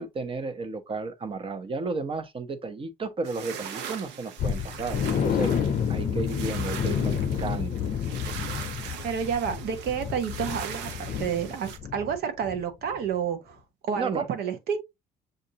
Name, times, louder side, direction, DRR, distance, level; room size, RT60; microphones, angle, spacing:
voice 1, 0.0-5.5 5.9-7.8 13.9-14.3, right 3 dB, 30° right, 0.8 m, -33 dB
sound 1, 3.3-11.8, right 8 dB, 90° right, 0.8 m, -40 dB
sound 2, 4.4-12.2 12.4-12.6 13.0-13.1, left 7 dB, 50° left, 0.6 m, -29 dB
voice 2, 9.0-14.8, right 7 dB, 70° right, 1.0 m, -30 dB
6.7 x 2.6 x 2.8 m
cardioid pair, 110°, 17 cm